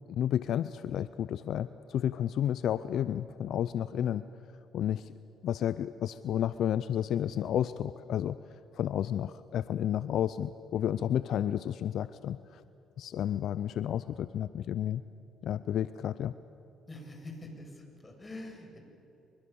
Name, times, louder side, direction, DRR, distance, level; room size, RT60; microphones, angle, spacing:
voice 1, 0.1-4.2 4.7-5.1 5.4-8.4 8.7-12.6 13.0-15.0 15.4-16.3, left 10 dB, 70° left, 14 dB, 0.6 m, -31 dB
voice 2, 16.9-18.8, left 1 dB, 25° left, 3 dB, 7.2 m, -45 dB
29.0 x 24.0 x 7.1 m, 2.9 s
supercardioid pair, 65°, 0 cm